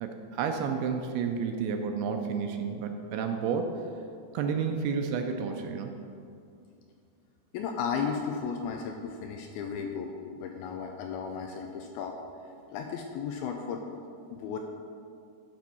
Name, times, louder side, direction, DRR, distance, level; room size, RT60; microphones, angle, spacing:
voice 1, 0.0-3.7 4.3-5.9, right 6 dB, 80° right, 4 dB, 2.4 m, -31 dB
voice 2, 7.5-10.1 10.4-12.2 12.7-13.9 14.3-14.6, left 6 dB, 80° left, 3 dB, 2.2 m, -34 dB
11.5 x 4.5 x 5.4 m, 2.4 s
omnidirectional pair, 4.8 m